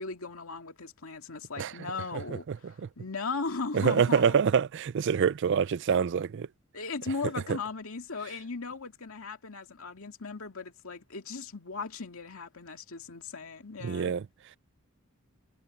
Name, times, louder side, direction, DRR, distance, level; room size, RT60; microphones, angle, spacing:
voice 1, 0.0-4.3 6.7-14.1, left 4 dB, 80° left, 2.2 m, -37 dB
voice 2, 2.1-2.6 2.8-2.9 3.7-6.5 13.8-14.2, right 6 dB, 60° right, 0.4 m, -26 dB
head